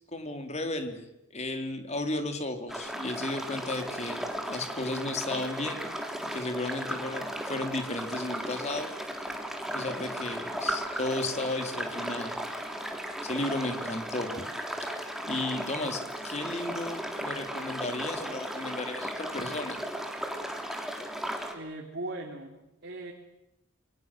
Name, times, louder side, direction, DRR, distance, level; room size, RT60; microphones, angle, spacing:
voice 1, 0.1-5.8 6.3-8.9 9.7-12.3 13.2-14.4 15.3-19.8, left 2 dB, 35° left, 6 dB, 3.9 m, -34 dB
sound 1, 2.7-21.5, equal, ahead, 3.7 m, -36 dB
voice 2, 21.5-23.1, right 2 dB, 55° right, 2 dB, 3.5 m, -39 dB
27.5 x 24.5 x 7.8 m, 0.92 s
head